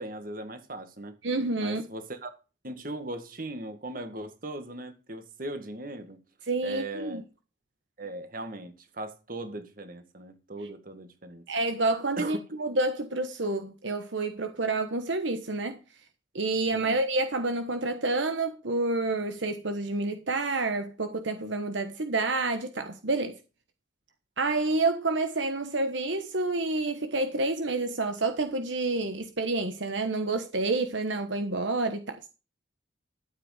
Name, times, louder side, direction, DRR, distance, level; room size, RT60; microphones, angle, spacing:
voice 1, 0.0-1.1 1.6-2.3 2.6-6.2 6.6-7.2 8.0-11.4 12.2-12.5 16.7-17.0, right 2 dB, 45° right, 1.9 m, -39 dB
voice 2, 1.2-1.8 6.5-7.2 11.5-15.8 16.3-23.4 24.4-32.3, right 2 dB, 70° right, 1.3 m, -29 dB
13.0 x 8.1 x 5.0 m
head